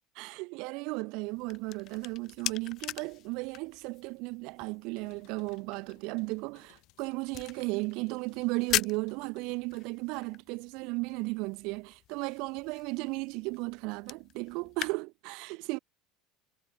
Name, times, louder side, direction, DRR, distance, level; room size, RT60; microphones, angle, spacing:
voice 1, 0.2-15.8, right 27 dB, 70° right, 0.5 m, -35 dB
sound 1, 1.2-14.9, left 14 dB, 50° left, 0.5 m, -41 dB
sound 2, 4.8-11.5 11.9-12.7, left 29 dB, 70° left, 7.1 m, -65 dB
cardioid pair, 135°, 0 cm